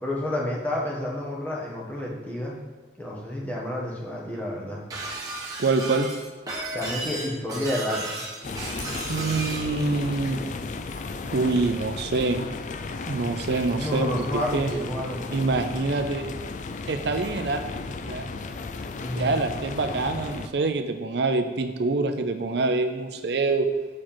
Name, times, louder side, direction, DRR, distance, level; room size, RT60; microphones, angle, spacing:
voice 1, 0.0-2.6 3.0-4.8 6.7-8.2 13.8-15.5 19.0-19.4, left 1 dB, 10° left, -4 dB, 1.4 m, -30 dB
Shatter, 4.9-9.7, right 2 dB, 20° right, 1.2 m, -34 dB
voice 2, 5.6-6.1 9.1-10.4 11.3-12.4 13.1-14.7 15.3-16.3 16.9-17.6 18.0-18.3 19.2-23.7, right 3 dB, 70° right, 7 dB, 0.5 m, -25 dB
sound 1, 8.4-20.5, left 3 dB, 45° left, 0.4 m, -35 dB
7.2 x 4.8 x 4.5 m, 1.5 s
head